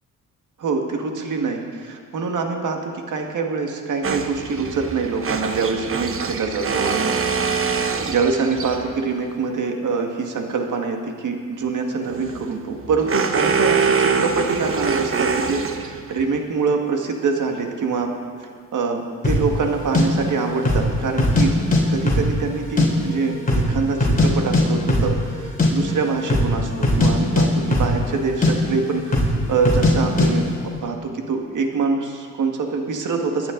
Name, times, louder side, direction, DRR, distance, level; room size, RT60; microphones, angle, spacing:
voice 1, 0.6-7.7 8.1-18.1 18.4-21.6 21.9-33.5, right 4 dB, 70° right, 3 dB, 1.9 m, -25 dB
sound 1, 4.0-9.0 12.0-16.2, right 5 dB, 40° right, 1.0 m, -24 dB
sound 2, 19.2-19.5 19.9-20.0 20.6-20.9 21.2-21.8 22.1-22.9 23.1-23.2 23.5-24.3 24.5-24.6 24.9-25.1 25.4-25.7 26.2-26.5 26.8-27.1 27.4-28.2 28.4-28.5 29.1-29.4 29.7-29.9 30.2-30.3, left 1 dB, 25° left, 3.0 m, -18 dB
23.0 x 10.0 x 4.0 m, 2.1 s
cardioid pair, 105°, 32 cm